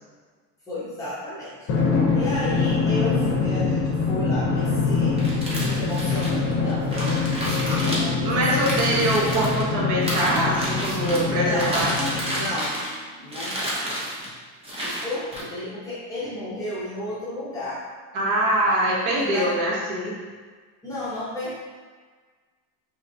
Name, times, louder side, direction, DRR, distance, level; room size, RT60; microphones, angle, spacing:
voice 1, 0.7-1.7 2.1-5.2 5.5-7.2 7.8-9.1 11.4-11.9 12.3-12.8 13.2-14.0 14.8-17.9 19.1-19.6 20.8-21.6, left 2 dB, 10° left, -10 dB, 1.0 m, -33 dB
Drum, 1.7-12.7, left 4 dB, 40° left, 0.8 m, -24 dB
sound 1, 5.1-9.6 10.0-11.2 11.6-13.0 13.3-14.3 14.6-15.4, equal, 15° right, 0.7 m, -30 dB
voice 2, 8.2-12.1 18.1-20.1, right 1 dB, 65° right, -4 dB, 1.2 m, -23 dB
4.0 x 3.2 x 2.8 m, 1.5 s
cardioid pair, 165°, 35 cm